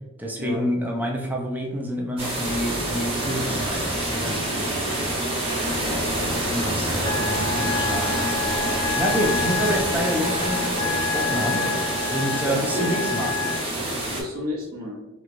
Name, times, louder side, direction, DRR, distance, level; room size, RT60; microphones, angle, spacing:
voice 1, 0.2-5.2 6.4-8.2 9.0-11.6 12.1-13.3, equal, 10° right, 0 dB, 0.5 m, -28 dB
sound 1, 2.2-14.2, right 1 dB, 30° right, 1.0 m, -26 dB
voice 2, 5.8-6.2 11.5-11.7 12.4-12.9 14.2-15.0, left 1 dB, 45° right, -4 dB, 0.7 m, -31 dB
Wind instrument woodwind instrument, 7.0-13.6, left 6 dB, 30° left, 0.7 m, -29 dB
3.4 x 3.0 x 2.5 m, 1.1 s
head